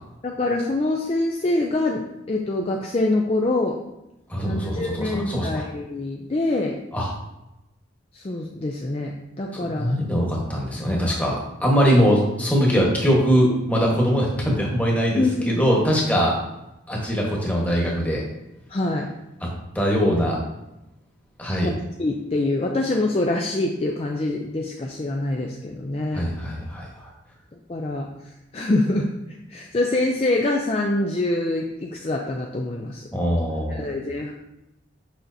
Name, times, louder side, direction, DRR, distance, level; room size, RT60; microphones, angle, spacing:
voice 1, 0.2-2.0 2.3-3.8 4.4-6.8 8.1-10.0 15.2-15.4 18.7-19.1 21.6-21.7 22.0-26.2 27.7-28.1 28.5-29.1 29.5-33.0 33.7-34.3, left 2 dB, 30° left, 1 dB, 0.4 m, -25 dB
voice 2, 4.3-5.6 6.9-7.1 9.6-16.4 16.9-18.2 19.7-20.4 21.4-21.7 26.1-27.1 33.1-33.9, equal, 10° left, -3 dB, 1.2 m, -22 dB
6.3 x 5.8 x 2.7 m, 0.92 s
head